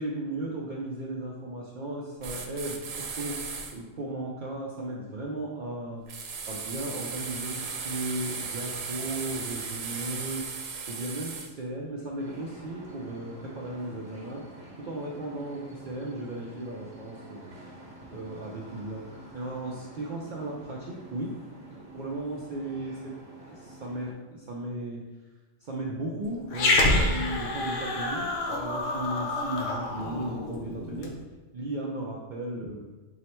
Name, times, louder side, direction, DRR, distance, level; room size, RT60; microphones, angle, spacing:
voice 1, 0.0-3.4 3.7-6.0 6.5-10.5 10.9-14.4 14.8-17.6 18.1-19.1 19.3-21.4 21.7-23.2 23.5-25.0 25.6-31.2 31.5-32.9, right 1 dB, 65° right, -3 dB, 0.4 m, -36 dB
sound 1, 2.2-3.7 6.1-11.5, right 5 dB, 85° right, 1.0 m, -36 dB
sound 2, 12.2-24.1, right 1 dB, 35° right, 0.8 m, -48 dB
Growling, 26.5-31.1, left 2 dB, 75° left, 1.0 m, -27 dB
4.7 x 2.1 x 4.3 m, 1.2 s
omnidirectional pair, 1.3 m